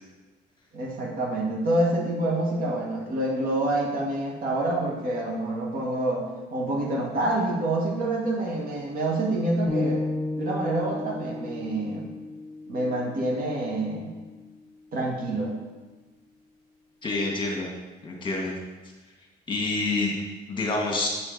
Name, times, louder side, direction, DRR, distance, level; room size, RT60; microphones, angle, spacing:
voice 1, 0.7-6.3 6.5-10.0 10.4-12.1 12.7-14.1 14.9-15.6, right 1 dB, 60° right, -1 dB, 1.5 m, -27 dB
sound 1, 9.7-13.8, left 2 dB, 20° right, 1.6 m, -33 dB
voice 2, 17.0-17.7 18.0-18.5 19.5-20.1 20.5-21.1, left 3 dB, 30° left, -1 dB, 1.4 m, -27 dB
6.4 x 5.1 x 3.8 m, 1.3 s
cardioid pair, 110°, 17 cm